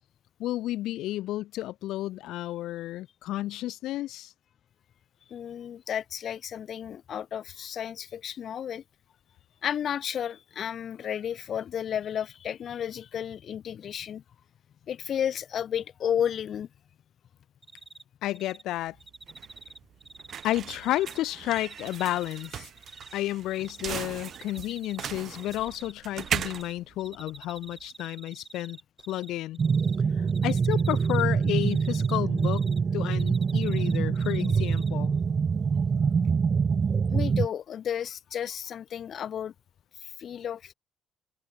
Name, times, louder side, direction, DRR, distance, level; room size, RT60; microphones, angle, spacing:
voice 1, 0.4-4.3 18.2-19.0 20.4-22.7 23.1-28.8 29.1-29.6 30.2-32.7 32.9-35.1, left 15 dB, 85° left, 0.8 m, -31 dB
voice 2, 5.3-8.8 9.6-14.2 14.9-16.7 37.1-39.5 40.0-40.7, left 9 dB, 50° left, 0.6 m, -32 dB
Cricket, 17.6-18.0 18.3-18.6 19.0-21.2 21.5-23.2 23.5-23.9 24.3-25.1 25.3-26.7 27.0-29.3 29.5-30.0 30.3-32.8 33.0-34.9, right 3 dB, 15° right, 1.0 m, -47 dB
sound 1, 18.8-27.8, right 9 dB, 50° right, 2.2 m, -38 dB
sound 2, 29.6-37.5, right 5 dB, 30° right, 0.6 m, -25 dB
cardioid pair, 140°, 0 cm